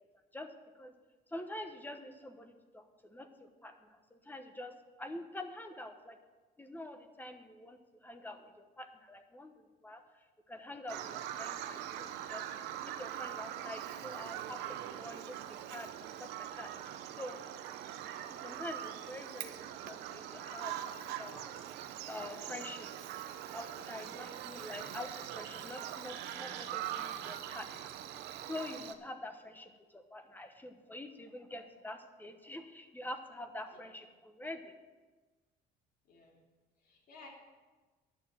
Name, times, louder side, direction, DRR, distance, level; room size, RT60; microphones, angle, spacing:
voice 1, 0.3-0.9 1.3-6.2 6.6-12.4 12.8-15.3 15.7-17.4 18.3-21.5 22.1-23.0 23.5-27.9 28.5-34.7, left 1 dB, 10° left, 7 dB, 1.1 m, -46 dB
Bird vocalization bird call bird song, 10.9-28.9, right 11 dB, 90° right, 0.8 m, -42 dB
voice 2, 23.9-24.2 33.7-33.8 36.0-36.4 36.8-37.3, left 3 dB, 60° left, -1 dB, 3.1 m, -57 dB
11.0 x 6.9 x 7.3 m, 1.3 s
cardioid pair, 110°, 17 cm